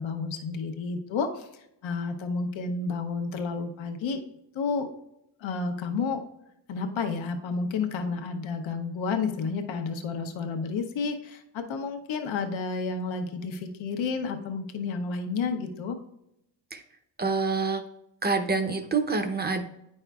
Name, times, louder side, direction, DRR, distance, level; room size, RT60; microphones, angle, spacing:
voice 1, 0.0-1.5 1.8-4.2 4.5-4.9 5.4-6.2 6.7-16.0, left 4 dB, 85° left, 5 dB, 0.8 m, -31 dB
voice 2, 17.2-17.8 18.2-19.6, right 4 dB, 20° right, 8 dB, 0.6 m, -26 dB
9.0 x 5.4 x 2.3 m, 0.81 s
cardioid pair, 90°, 45 cm